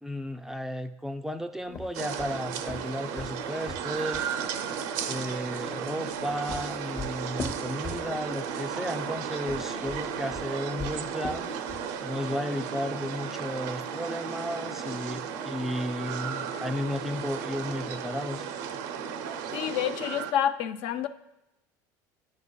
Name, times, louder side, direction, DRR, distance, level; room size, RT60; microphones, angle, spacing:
voice 1, 0.0-4.3 5.0-11.5 12.0-18.5, equal, 5° right, 7 dB, 0.3 m, -34 dB
sound 1, 1.7-4.3 6.0-8.4 9.3-11.9, left 3 dB, 30° left, 0.8 m, -40 dB
sound 2, 1.9-20.3, right 7 dB, 80° right, 0.5 m, -34 dB
voice 2, 19.5-21.1, left 10 dB, 65° left, 11 dB, 0.4 m, -28 dB
9.7 x 4.4 x 2.2 m, 0.92 s
supercardioid pair, 110°, 10 cm